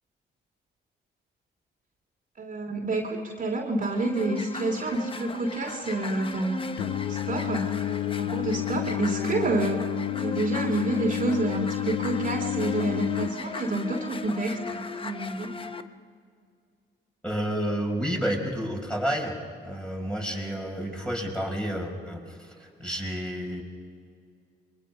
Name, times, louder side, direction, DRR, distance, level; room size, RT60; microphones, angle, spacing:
voice 1, 2.4-7.8 8.2-9.9 10.2-15.5, right 2 dB, 40° right, 1 dB, 2.9 m, -29 dB
sound 1, 3.8-15.8, left 3 dB, 25° left, 1.0 m, -37 dB
Singing, 6.8-13.3, left 17 dB, 80° left, 0.5 m, -30 dB
voice 2, 17.2-19.4 19.6-23.6, equal, 5° left, 0 dB, 5.5 m, -30 dB
29.0 x 23.0 x 5.5 m, 2.3 s
cardioid pair, 90°, 20 cm